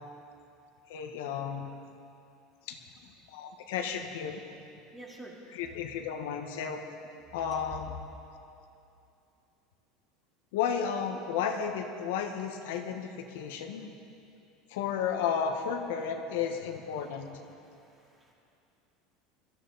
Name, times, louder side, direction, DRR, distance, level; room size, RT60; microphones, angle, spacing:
voice 1, 0.9-1.7 2.7-2.8 3.3-4.4 5.5-6.8 7.3-7.9 10.5-13.9 14.7-17.3, left 7 dB, 85° left, 4 dB, 1.4 m, -33 dB
voice 2, 4.9-5.3 17.5-18.3, right 2 dB, 10° right, -3 dB, 2.5 m, -49 dB
22.0 x 14.5 x 4.1 m, 2.6 s
cardioid pair, 160°, 0 cm